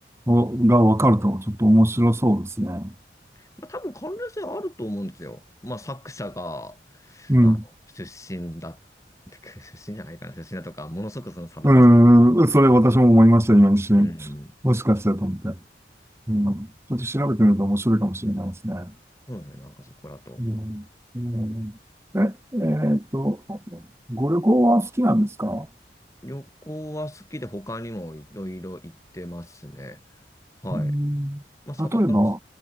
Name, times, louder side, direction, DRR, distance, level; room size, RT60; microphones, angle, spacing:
voice 1, 0.3-2.9 7.3-7.6 11.6-14.1 14.6-15.5 16.3-18.9 20.4-20.8 21.1-21.7 22.1-23.8 24.1-25.7 30.7-31.4 31.8-32.4, equal, 15° right, 1.9 m, -19 dB
voice 2, 3.4-7.6 8.0-8.8 9.3-11.9 14.0-14.5 17.2-17.3 19.3-20.4 26.2-30.0 30.6-31.0 31.7-32.2, equal, 15° left, 5.4 m, -36 dB
head